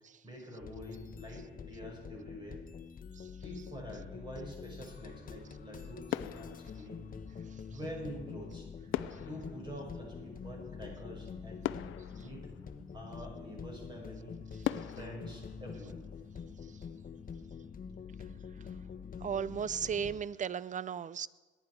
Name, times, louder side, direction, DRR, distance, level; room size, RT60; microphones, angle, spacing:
voice 1, 0.2-2.6 3.4-7.0 7.7-8.7 9.2-11.7 12.2-12.5 12.9-14.4 14.9-16.0, equal, 25° right, -1 dB, 5.5 m, -46 dB
sound 1, 0.6-20.2, left 6 dB, 45° left, 1.2 m, -46 dB
sound 2, 5.4-5.8 6.1-7.6 8.9-10.8 11.3-11.4 11.6-13.2 13.8-13.9 14.6-16.5 16.8-17.1, left 13 dB, 85° left, 0.6 m, -40 dB
voice 2, 19.2-21.3, right 7 dB, 40° right, 19 dB, 0.5 m, -35 dB
21.5 x 10.0 x 4.7 m, 1.3 s
cardioid pair, 90°, 20 cm